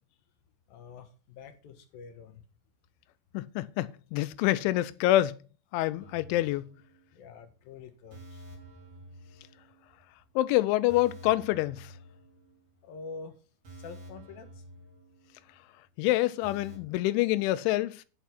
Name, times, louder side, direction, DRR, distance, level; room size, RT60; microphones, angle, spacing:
voice 1, 0.7-2.4 7.1-8.5 12.8-13.4 13.7-14.6, left 4 dB, 65° left, 2.7 m, -46 dB
voice 2, 3.3-5.4 5.7-6.7 10.4-11.9 16.0-18.0, left 16 dB, 90° left, 3.1 m, -26 dB
sound 1, 6.0-7.3 7.5-7.7 8.1-10.0 10.3-10.4 10.9-12.8 13.1-13.2 13.6-15.6 15.9-16.0 16.4-16.8, right 1 dB, 35° right, 3.3 m, -50 dB
10.5 x 6.4 x 5.9 m
omnidirectional pair, 5.3 m